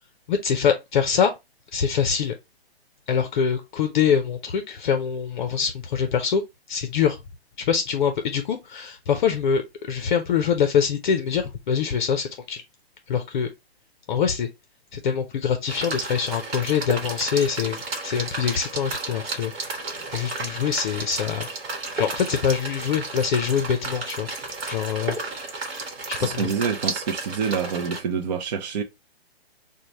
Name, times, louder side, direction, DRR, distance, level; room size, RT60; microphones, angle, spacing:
voice 1, 0.3-1.3 1.7-2.3 3.1-6.4 6.7-7.2 7.6-12.6 13.1-13.5 14.1-14.5 14.9-19.5 20.1-21.5 22.0-24.3 24.7-25.2 26.1-26.5, left 7 dB, 50° left, 0.5 m, -24 dB
sound 1, 15.7-28.0, right 3 dB, 65° right, 1.1 m, -33 dB
voice 2, 26.2-28.8, right 6 dB, 40° right, 0.5 m, -27 dB
3.1 x 2.1 x 3.9 m
hypercardioid pair, 145°, 32 cm